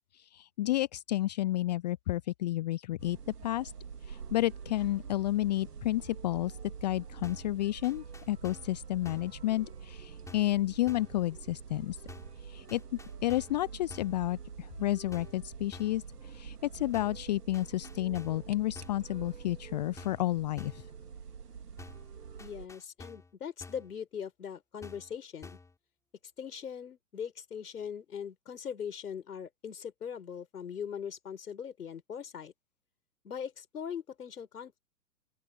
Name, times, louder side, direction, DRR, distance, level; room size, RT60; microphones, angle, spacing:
voice 1, 0.1-3.2 3.4-3.7 4.0-12.0 12.4-12.8 13.2-20.9, left 15 dB, 25° left, 0.6 m, -31 dB
sound 1, 3.0-22.7, right 6 dB, 70° right, 3.3 m, -46 dB
sound 2, 7.2-7.6 7.8-8.8 9.1-9.4 10.3-10.6 10.9-11.2 12.1-12.4 12.7-13.6 13.9-14.2 15.1-15.4 15.7-16.0 16.9-17.3 17.5-18.5 18.8-19.1 20.0-20.3 20.6-20.9 21.8-22.1 22.4-23.3 23.6-23.9 24.8-25.1 25.4-25.8, left 3 dB, 5° left, 3.9 m, -50 dB
voice 2, 22.4-25.6 26.4-32.5 33.2-34.8, left 7 dB, 70° left, 5.4 m, -40 dB
open air
figure-of-eight pair, 120°, 48 cm